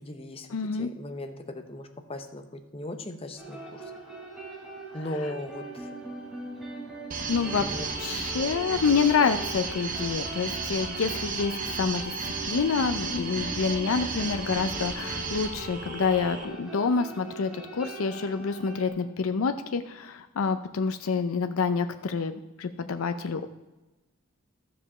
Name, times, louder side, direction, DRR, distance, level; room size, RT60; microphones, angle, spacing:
voice 1, 0.0-3.9 4.9-5.9 7.4-8.1, left 1 dB, 25° left, 7 dB, 0.8 m, -38 dB
voice 2, 0.5-0.9 7.3-7.7 8.0-12.1 12.4-23.5, left 5 dB, 85° left, 9 dB, 0.5 m, -27 dB
sound 1, 3.4-18.9, right 2 dB, 5° right, 3.1 m, -41 dB
sound 2, 7.1-16.4, right 4 dB, 40° right, 1.0 m, -34 dB
12.0 x 5.1 x 6.9 m, 1.1 s
head